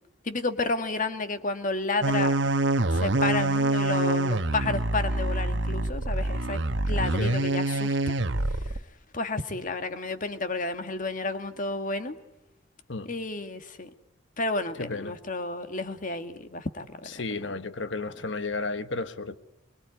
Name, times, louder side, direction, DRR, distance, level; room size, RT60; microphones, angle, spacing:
voice 1, 0.2-2.3 2.9-8.1 8.5-8.7 9.1-12.2 13.1-13.9 14.4-17.1, left 3 dB, 45° left, 1.9 m, -31 dB
sound 1, 2.0-8.8, right 2 dB, 65° right, 1.2 m, -26 dB
voice 2, 14.8-15.1 17.0-19.3, left 3 dB, 70° left, 1.4 m, -33 dB
25.0 x 22.0 x 9.6 m
head